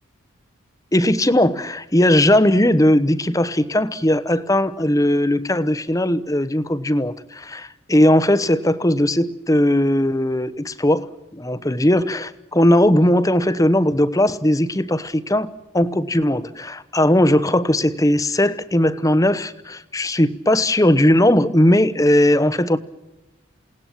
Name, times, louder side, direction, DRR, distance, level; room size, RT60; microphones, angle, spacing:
voice 1, 0.9-15.5 15.7-22.8, left 1 dB, 15° left, 0.9 m, -18 dB
28.5 x 18.5 x 7.4 m
head